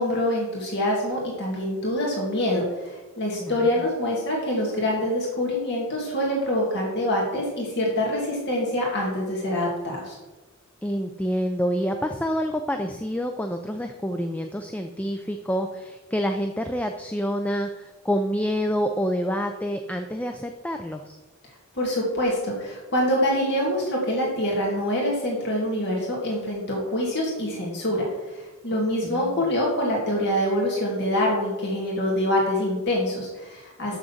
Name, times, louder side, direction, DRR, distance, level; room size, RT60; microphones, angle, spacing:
voice 1, 0.0-10.2 21.7-34.0, left 1 dB, 50° left, -3 dB, 2.0 m, -25 dB
voice 2, 3.4-3.9 10.8-21.2 28.7-29.5 33.9-34.0, equal, 5° left, 6 dB, 0.4 m, -28 dB
6.5 x 6.2 x 7.1 m, 1.2 s
head